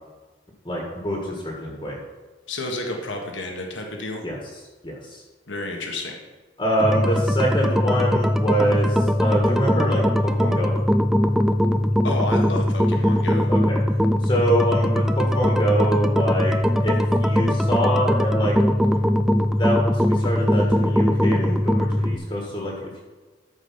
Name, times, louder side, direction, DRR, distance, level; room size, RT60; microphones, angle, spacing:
voice 1, 0.6-2.0 4.2-4.4 4.8-5.2 6.6-10.7 13.5-13.8 14.2-16.5 16.8-18.5 19.5-23.0, equal, 25° left, -2 dB, 1.7 m, -25 dB
voice 2, 2.5-4.2 5.5-6.2 12.0-13.5, left 2 dB, 80° left, 1 dB, 1.5 m, -30 dB
sound 1, 6.8-22.2, equal, ahead, 0.4 m, -21 dB
13.0 x 5.1 x 5.7 m, 1.3 s
head